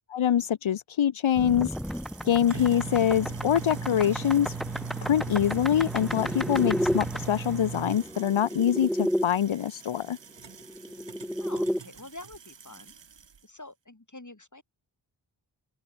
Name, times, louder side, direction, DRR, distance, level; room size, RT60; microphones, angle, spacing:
voice 1, 0.1-1.7 2.2-4.6 5.0-10.2, left 9 dB, 75° left, 0.6 m, -24 dB
sound 1, 1.4-9.3 10.5-11.8, equal, ahead, 1.3 m, -32 dB
sound 2, 1.4-13.4, right 6 dB, 65° right, 1.0 m, -40 dB
voice 2, 11.4-12.9 13.4-14.6, left 2 dB, 40° left, 5.4 m, -46 dB
open air
wide cardioid pair, 45°, 48 cm